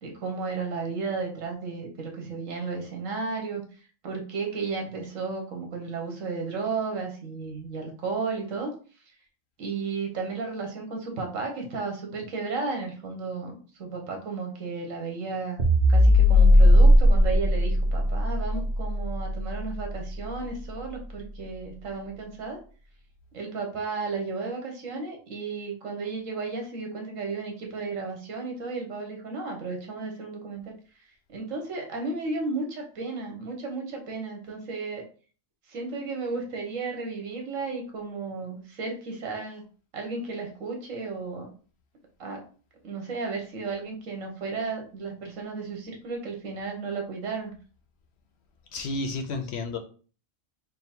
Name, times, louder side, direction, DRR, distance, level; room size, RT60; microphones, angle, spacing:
voice 1, 0.0-3.6 4.0-8.7 9.6-15.6 15.9-22.6 23.3-30.7 31.3-35.0 35.7-39.6 39.9-41.5 42.2-42.4 42.8-47.5, right 4 dB, 75° right, 2 dB, 1.4 m, -33 dB
sound 1, 15.6-20.1, left 1 dB, 50° right, 1.0 m, -18 dB
voice 2, 48.7-49.8, left 3 dB, 65° left, 5 dB, 0.8 m, -31 dB
3.8 x 2.1 x 4.3 m, 0.39 s
omnidirectional pair, 1.3 m